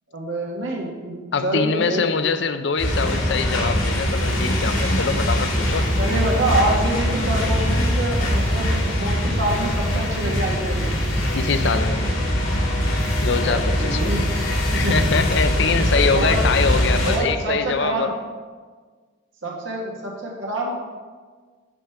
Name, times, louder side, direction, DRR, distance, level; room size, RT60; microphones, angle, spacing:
voice 1, 0.1-2.0 6.0-11.0 13.3-14.3 14.7-15.1 15.9-16.4 17.0-18.1 19.4-20.7, right 1 dB, 70° right, -2 dB, 1.5 m, -26 dB
voice 2, 1.3-5.9 11.3-12.0 13.2-14.1 14.7-18.1, left 5 dB, 55° left, 10 dB, 0.5 m, -23 dB
sound 1, 2.8-17.2, equal, 80° left, 2.3 m, -22 dB
11.0 x 5.1 x 4.5 m, 1.5 s
head